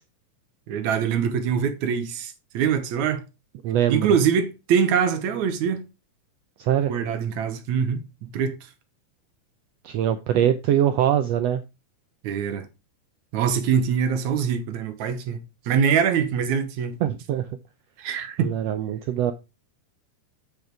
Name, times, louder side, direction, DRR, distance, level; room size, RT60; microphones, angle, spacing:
voice 1, 0.7-3.2 3.9-5.9 6.9-8.6 12.2-12.7 13.3-15.4 15.7-17.0 18.0-18.5, right 7 dB, 70° right, 2.2 m, -24 dB
voice 2, 3.6-4.1 6.6-6.9 9.8-11.6 17.0-17.5 18.4-19.3, right 10 dB, 90° right, 1.4 m, -22 dB
8.7 x 5.3 x 4.5 m
omnidirectional pair, 3.6 m